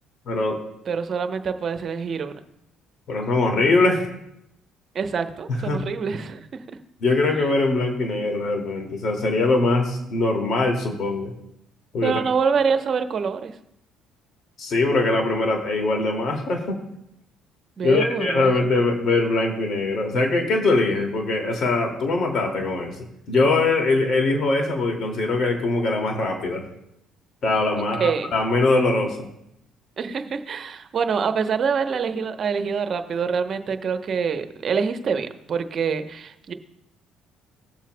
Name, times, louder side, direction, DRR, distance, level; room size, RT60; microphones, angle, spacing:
voice 1, 0.3-0.6 3.1-4.1 5.5-5.8 7.0-11.3 11.9-12.2 14.6-16.8 17.8-23.0 23.3-26.6 27.4-29.3, left 2 dB, 55° left, 2 dB, 2.4 m, -22 dB
voice 2, 0.9-2.3 4.9-6.5 12.0-13.5 17.8-18.8 28.0-28.3 30.0-36.5, right 6 dB, 50° right, 8 dB, 0.9 m, -25 dB
18.5 x 7.4 x 2.3 m, 0.81 s
hypercardioid pair, 60°, 0 cm